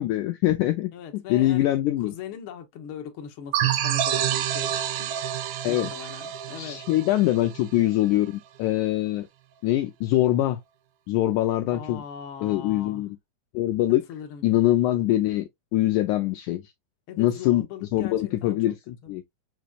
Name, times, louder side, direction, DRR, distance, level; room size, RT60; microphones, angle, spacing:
voice 1, 0.0-0.9 1.3-2.1 5.6-5.9 6.6-9.3 9.6-10.6 11.1-12.0 12.4-13.2 13.5-14.0 14.4-16.6 17.2-17.7 17.9-19.2, left 14 dB, 85° left, 1.7 m, -23 dB
voice 2, 0.9-1.7 2.0-6.8 11.7-13.1 14.1-14.4 17.1-18.7 19.0-19.1, left 8 dB, 65° left, 1.3 m, -40 dB
sound 1, 3.5-8.0, right 11 dB, 85° right, 1.6 m, -28 dB
6.9 x 3.0 x 2.4 m
omnidirectional pair, 4.1 m